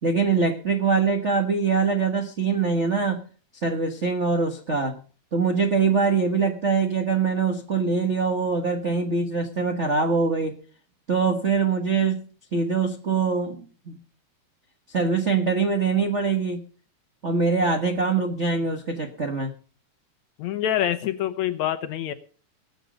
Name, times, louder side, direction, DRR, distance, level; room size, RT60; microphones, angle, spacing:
voice 1, 0.0-3.2 3.6-5.0 5.3-10.6 11.1-12.2 12.5-14.0 14.9-16.6 17.2-19.6, right 4 dB, 60° right, 5 dB, 0.7 m, -23 dB
voice 2, 20.4-22.1, left 11 dB, 70° left, 12 dB, 2.1 m, -26 dB
20.0 x 8.3 x 5.1 m, 0.40 s
omnidirectional pair, 3.7 m